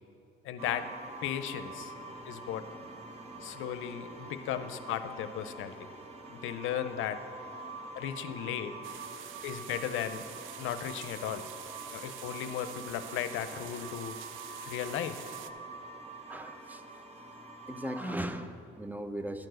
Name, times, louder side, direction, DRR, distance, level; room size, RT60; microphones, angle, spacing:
voice 1, 0.4-0.9 1.2-1.9 2.3-2.6 3.4-5.7 6.3-7.2 8.0-8.7 9.4-10.2 10.6-11.4 11.9-14.2 14.7-15.2, left 10 dB, 85° left, 10 dB, 0.6 m, -35 dB
sound 1, 0.6-18.2, right 2 dB, 30° right, 1.2 m, -46 dB
sound 2, 8.8-15.5, right 12 dB, 85° right, 0.4 m, -47 dB
voice 2, 16.3-17.3 17.7-19.5, right 1 dB, 10° right, 9 dB, 0.6 m, -38 dB
11.5 x 4.6 x 7.7 m, 2.8 s
cardioid pair, 90°, 20 cm